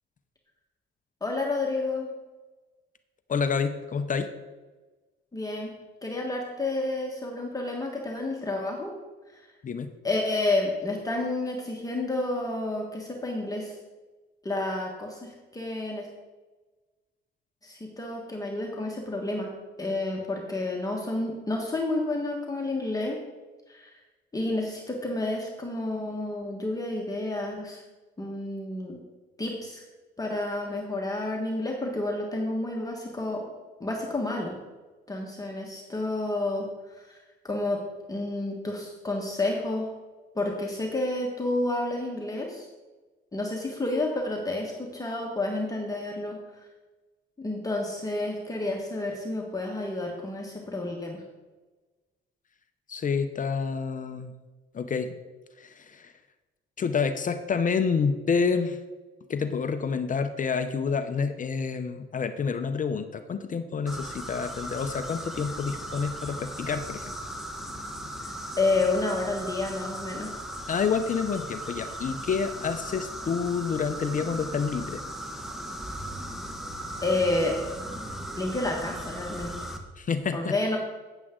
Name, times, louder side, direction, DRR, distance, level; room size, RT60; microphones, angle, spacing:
voice 1, 1.2-2.1 5.3-5.7 6.0-8.9 9.3-9.5 10.0-13.7 14.4-16.1 17.6-19.5 19.8-23.2 23.7-23.9 24.3-27.8 28.2-29.0 29.4-29.8 30.2-33.5 33.8-34.6 35.1-36.7 37.0-37.2 37.4-37.8 38.1-39.9 40.3-42.7 43.3-46.4 47.4-51.2 68.6-70.3 77.0-77.6 78.4-79.5 80.3-80.8, left 2 dB, 15° left, -1 dB, 1.5 m, -30 dB
voice 2, 3.3-4.3 9.6-9.9 52.9-54.3 54.7-55.1 55.6-56.1 56.8-58.8 59.3-67.1 70.7-75.0 80.0-80.5, left 5 dB, 40° left, 9 dB, 0.6 m, -28 dB
sound 1, 63.9-79.8, equal, ahead, 1.2 m, -37 dB
9.0 x 8.3 x 3.7 m, 1.2 s
cardioid pair, 90°, 20 cm